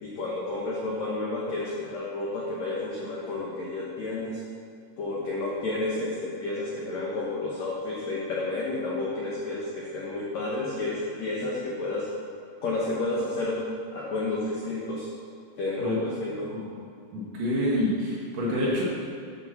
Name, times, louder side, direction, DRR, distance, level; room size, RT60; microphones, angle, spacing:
voice 1, 0.0-4.4 5.0-12.1 12.6-13.6 13.9-15.1 15.6-16.5, left 2 dB, 75° left, -5 dB, 1.6 m, -31 dB
voice 2, 17.1-18.8, left 1 dB, 60° right, -5 dB, 2.8 m, -27 dB
8.6 x 5.9 x 7.1 m, 2.3 s
omnidirectional pair, 5.0 m